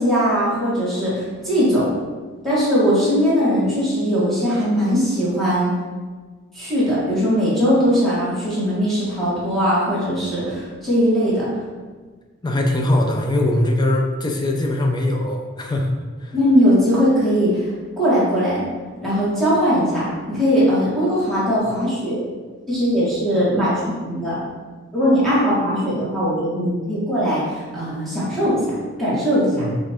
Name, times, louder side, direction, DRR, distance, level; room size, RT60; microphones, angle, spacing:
voice 1, 0.0-1.9 2.4-5.7 6.5-11.5 16.3-17.7 18.0-18.6 19.0-22.2 22.7-24.4 24.9-29.7, equal, ahead, -11 dB, 1.4 m, -20 dB
voice 2, 12.4-16.4 29.5-29.7, left 1 dB, 20° left, 1 dB, 0.5 m, -21 dB
5.8 x 2.5 x 3.4 m, 1.4 s
head